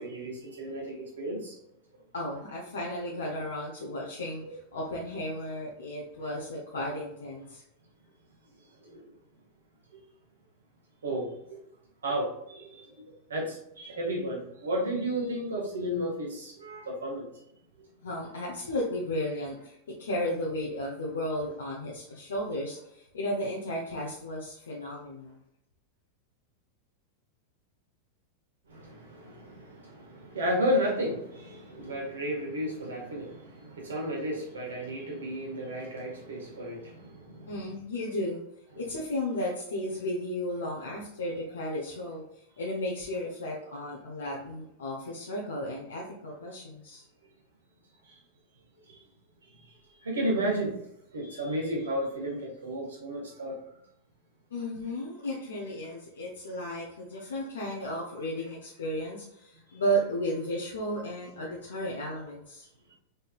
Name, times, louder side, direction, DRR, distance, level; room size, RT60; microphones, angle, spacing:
voice 1, 0.0-1.6 4.4-4.5 8.8-9.1 11.0-11.6 12.0-13.0 13.3-17.3 28.7-37.5 48.0-48.2 48.9-49.0 49.5-49.7 50.0-50.7 51.1-53.6, equal, 70° right, -1 dB, 1.7 m, -33 dB
voice 2, 2.1-7.6 18.0-25.4 37.5-38.4 38.8-42.2 42.6-47.0 54.5-62.7, equal, 65° left, -3 dB, 0.9 m, -34 dB
5.2 x 4.0 x 2.4 m, 0.79 s
figure-of-eight pair, 90°, 0 cm